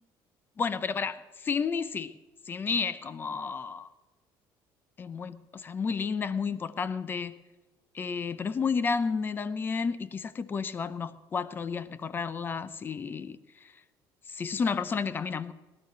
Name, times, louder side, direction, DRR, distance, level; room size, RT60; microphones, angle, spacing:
voice 1, 0.6-2.2 2.5-3.9 5.0-7.4 7.9-13.7 14.3-15.5, left 5 dB, 25° left, 0.6 m, -31 dB
18.5 x 12.0 x 6.1 m
cardioid pair, 160°, 9 cm